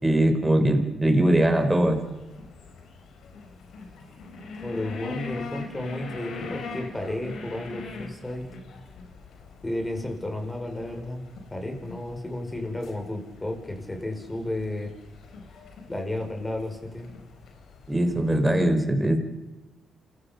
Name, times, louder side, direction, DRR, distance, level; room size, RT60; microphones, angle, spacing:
voice 1, 0.0-2.0 17.9-19.2, right 1 dB, 15° right, 5 dB, 4.6 m, -21 dB
sound 1, 1.4-18.6, left 4 dB, 75° left, 3.9 m, -43 dB
voice 2, 4.6-8.4 9.6-11.2 11.5-14.9 15.9-17.1, left 1 dB, 20° left, 3 dB, 6.0 m, -32 dB
28.0 x 17.0 x 5.5 m, 1.0 s
supercardioid pair, 60°, 0 cm